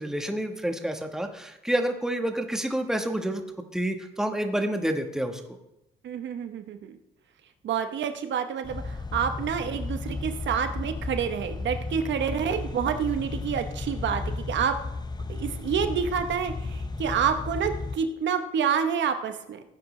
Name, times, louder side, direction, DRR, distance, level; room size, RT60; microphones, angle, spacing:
voice 1, 0.0-3.4 3.7-5.6, right 1 dB, 5° right, 5 dB, 1.2 m, -28 dB
voice 2, 6.0-7.0 7.6-14.7 15.3-19.6, right 7 dB, 65° right, 8 dB, 1.0 m, -28 dB
sound 1, 8.6-18.0, left 3 dB, 20° left, 0.8 m, -34 dB
16.5 x 9.2 x 3.2 m, 0.86 s
cardioid pair, 90°, 20 cm